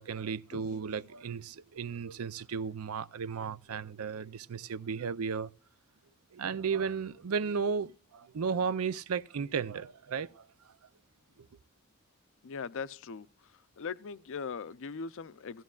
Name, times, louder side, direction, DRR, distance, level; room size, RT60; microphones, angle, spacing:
voice 1, 0.0-5.5 6.3-10.5, right 6 dB, 85° right, 0.5 m, -34 dB
voice 2, 12.4-13.3 13.8-15.6, left 5 dB, 65° left, 0.5 m, -40 dB
15.5 x 14.0 x 2.3 m
head